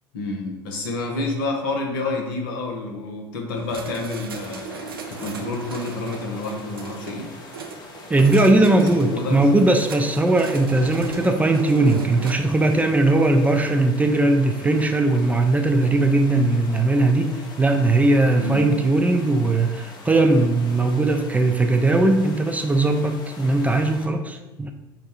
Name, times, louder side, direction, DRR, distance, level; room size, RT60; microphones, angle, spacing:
voice 1, 0.1-7.3 8.3-9.6 18.3-18.7, left 2 dB, 70° left, 1 dB, 0.8 m, -29 dB
sound 1, 3.5-12.3, right 5 dB, 85° right, 0.4 m, -37 dB
sound 2, 4.3-24.1, left 3 dB, 40° left, 0.8 m, -43 dB
voice 2, 8.1-24.7, right 2 dB, 10° right, 4 dB, 0.4 m, -19 dB
5.0 x 2.2 x 4.2 m, 1.1 s
figure-of-eight pair, 65°, 12 cm